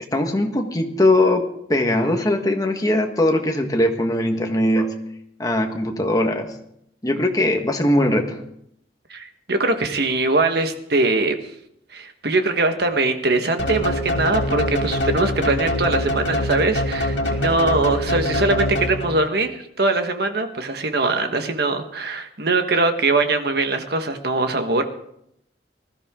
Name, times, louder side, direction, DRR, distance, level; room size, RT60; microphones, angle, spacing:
voice 1, 0.1-4.9 5.4-6.5 7.0-8.4, left 1 dB, 20° left, 3 dB, 1.5 m, -20 dB
voice 2, 9.1-11.4 11.9-24.8, right 2 dB, 60° right, 6 dB, 1.4 m, -22 dB
sound 1, 13.6-19.3, left 1 dB, 80° left, 2.5 m, -24 dB
20.0 x 13.5 x 3.7 m, 0.73 s
head